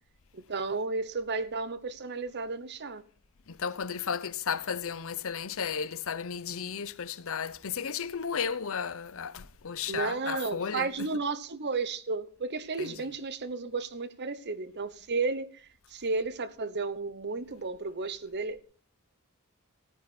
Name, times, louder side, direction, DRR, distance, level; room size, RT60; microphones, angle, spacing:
voice 1, 0.3-3.0 9.9-18.6, right 4 dB, 50° right, 0.9 m, -33 dB
voice 2, 3.5-11.1 12.8-13.1, left 7 dB, 65° left, 0.7 m, -34 dB
17.0 x 9.5 x 4.2 m
head